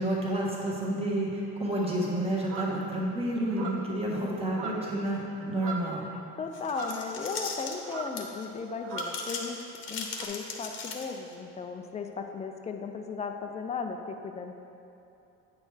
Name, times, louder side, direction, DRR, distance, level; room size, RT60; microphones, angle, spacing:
voice 1, 0.0-6.0, right 1 dB, 20° right, -4 dB, 1.3 m, -30 dB
sound 1, 2.4-2.8 3.5-4.0 4.5-5.0 5.3-6.0 6.6-7.5 7.8-8.2 8.8-9.2 10.1-10.2, right 4 dB, 50° right, 0.8 m, -39 dB
voice 2, 6.4-9.6 9.9-14.5, left 5 dB, 25° left, 5 dB, 0.4 m, -36 dB
sound 2, 6.5-8.5 8.9-11.3, left 5 dB, 45° left, 0.9 m, -38 dB
9.2 x 6.3 x 3.3 m, 2.8 s
cardioid pair, 150°, 29 cm